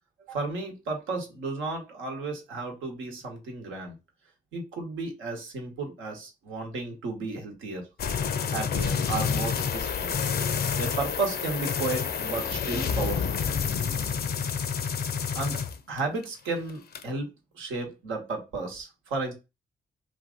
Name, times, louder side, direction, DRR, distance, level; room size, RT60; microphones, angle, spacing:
voice 1, 0.3-3.9 4.5-7.8 8.5-10.2 10.8-13.4 15.3-15.6 15.9-17.3 17.5-19.3, right 3 dB, 80° right, 1.0 m, -33 dB
sound 1, 8.0-16.2 16.6-17.0, left 6 dB, 55° left, 0.5 m, -28 dB
2.7 x 2.6 x 3.6 m
hypercardioid pair, 40°, 20 cm